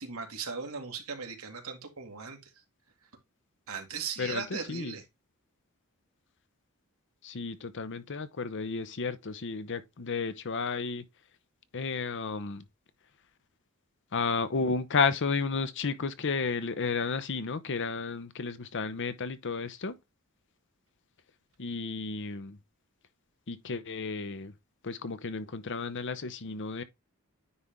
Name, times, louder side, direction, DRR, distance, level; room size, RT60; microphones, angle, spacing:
voice 1, 0.0-2.4 3.7-5.0, right 5 dB, 70° right, 1.9 m, -38 dB
voice 2, 4.2-4.9 7.2-11.1 11.7-12.6 14.1-20.0 21.6-22.6 23.5-24.5 24.8-26.8, left 4 dB, 55° left, 0.7 m, -32 dB
9.7 x 3.4 x 3.6 m
head